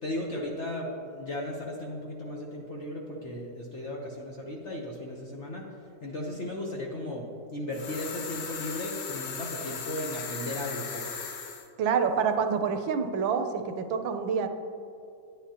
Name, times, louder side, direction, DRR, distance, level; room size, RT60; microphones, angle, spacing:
voice 1, 0.0-5.7 6.0-11.2, left 1 dB, 50° left, -2 dB, 0.9 m, -36 dB
sound 1, 7.7-11.7, left 6 dB, 70° left, 1.5 m, -37 dB
voice 2, 11.8-14.5, right 6 dB, 80° right, 7 dB, 1.4 m, -27 dB
10.5 x 9.2 x 2.8 m, 2.6 s
omnidirectional pair, 2.1 m